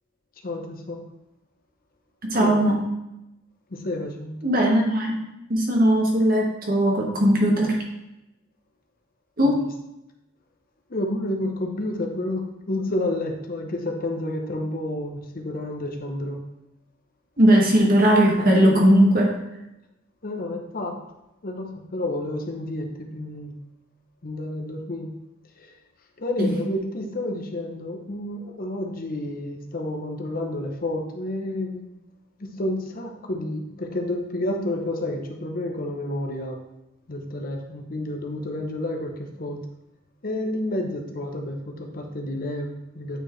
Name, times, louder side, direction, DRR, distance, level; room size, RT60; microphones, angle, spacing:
voice 1, 0.4-1.0 2.3-2.6 3.7-4.4 9.4-9.5 10.9-16.4 20.2-20.9 21.4-23.5 24.2-25.1 26.2-31.8 32.4-36.6 37.1-39.1 39.4-39.6 40.2-43.2, left 1 dB, 45° left, 3 dB, 0.8 m, -30 dB
voice 2, 2.3-2.8 4.4-5.2 5.5-7.8 9.4-9.7 17.4-19.3 26.4-26.6, equal, 50° right, -1 dB, 1.6 m, -18 dB
8.8 x 4.7 x 3.2 m, 0.91 s
head